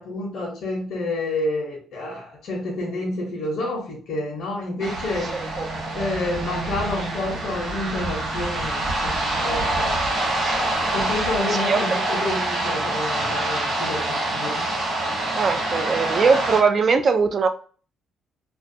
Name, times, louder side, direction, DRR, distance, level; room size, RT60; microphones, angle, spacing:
voice 1, 0.0-5.5 5.9-10.0 10.8-14.7, left 2 dB, 70° left, 0.7 m, -29 dB
sound 1, 4.8-16.6, right 2 dB, 75° right, 1.0 m, -26 dB
voice 2, 15.3-17.5, right 5 dB, 50° right, 0.3 m, -20 dB
2.3 x 2.2 x 2.6 m
cardioid pair, 90°, 0 cm